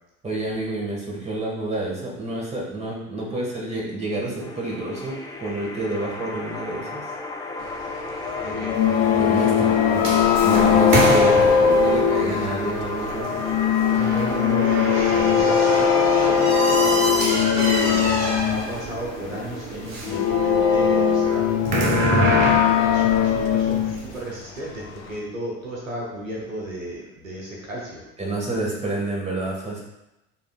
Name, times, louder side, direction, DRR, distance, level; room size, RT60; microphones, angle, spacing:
voice 1, 0.2-7.1 9.2-13.3 28.2-29.8, right 2 dB, 15° right, -3 dB, 1.7 m, -29 dB
sound 1, 4.4-23.3, left 3 dB, 10° left, 0.6 m, -33 dB
voice 2, 7.8-9.0 9.4-10.0 13.8-28.0, right 1 dB, 85° right, -3 dB, 0.9 m, -34 dB
sound 2, 8.2-12.9 13.2-18.7 19.0-19.1 20.0-24.0 25.1-25.2, left 7 dB, 55° left, 0.7 m, -20 dB
sound 3, 8.8-24.2, right 2 dB, 45° right, 1.0 m, -28 dB
6.9 x 3.1 x 2.4 m, 0.92 s
figure-of-eight pair, 55°, 39 cm